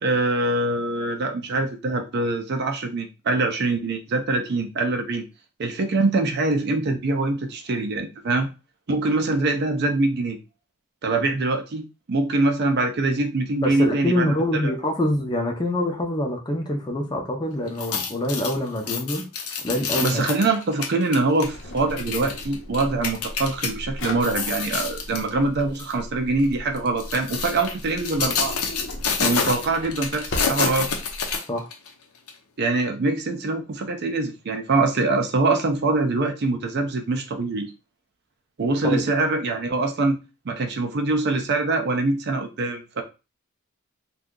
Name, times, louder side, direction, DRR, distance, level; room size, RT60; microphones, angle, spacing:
voice 1, 0.0-5.3 5.6-8.5 8.9-10.4 11.0-14.3 14.6-14.7 20.0-28.6 29.2-30.9 32.6-37.7 38.6-40.2 40.5-43.0, right 2 dB, 50° right, 5 dB, 0.5 m, -24 dB
voice 2, 13.6-19.2 19.6-20.2 31.5-31.7 38.8-39.0, left 1 dB, 20° left, 2 dB, 0.6 m, -25 dB
sound 1, 17.7-23.7 24.1-25.3 25.7-25.9 26.8-31.9 32.3-32.4, left 6 dB, 90° left, 0.7 m, -28 dB
Drawer open or close, 21.4-31.4, left 1 dB, 55° left, 0.8 m, -37 dB
2.7 x 2.3 x 3.7 m, 0.30 s
head